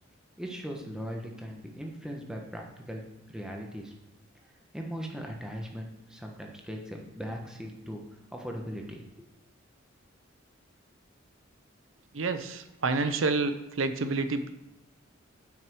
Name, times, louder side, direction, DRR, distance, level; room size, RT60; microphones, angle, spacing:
voice 1, 0.4-3.9 4.7-8.0 8.3-9.3, equal, 5° right, 1 dB, 1.2 m, -39 dB
voice 2, 12.1-14.5, right 3 dB, 90° right, 10 dB, 0.7 m, -29 dB
7.8 x 5.9 x 6.2 m, 0.93 s
head